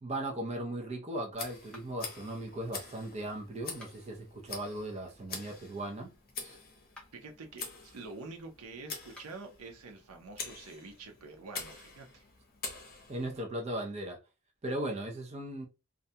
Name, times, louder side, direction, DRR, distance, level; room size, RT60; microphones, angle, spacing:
voice 1, 0.0-6.1 6.4-6.6 13.1-14.2 14.6-15.7, right 1 dB, 30° right, 0.5 m, -37 dB
Tick, 1.3-13.4, left 4 dB, 45° left, 0.8 m, -46 dB
sound 1, 1.7-2.2 3.7-4.2 6.8-7.3 9.0-9.5, left 1 dB, 5° left, 0.7 m, -55 dB
voice 2, 7.1-12.2, right 3 dB, 85° right, 0.6 m, -47 dB
2.4 x 2.1 x 2.7 m
head